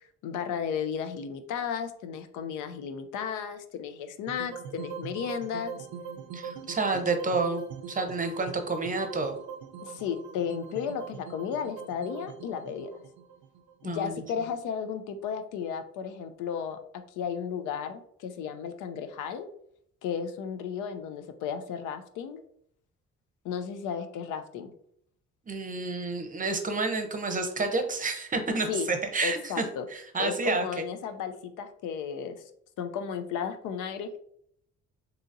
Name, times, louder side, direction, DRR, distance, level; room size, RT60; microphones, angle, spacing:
voice 1, 0.2-5.9 9.8-12.9 13.8-16.8 17.1-19.5 20.0-22.4 23.4-24.7 28.7-28.9 29.2-29.9 30.2-32.4 32.8-34.1, left 7 dB, 90° left, 9 dB, 0.5 m, -34 dB
sound 1, 4.3-14.5, right 7 dB, 70° right, 0.5 m, -42 dB
voice 2, 6.3-7.6 7.9-9.3 13.8-14.1 25.5-30.8, right 3 dB, 25° right, 5 dB, 0.6 m, -29 dB
3.9 x 2.8 x 2.5 m, 0.69 s
cardioid pair, 90°, 30 cm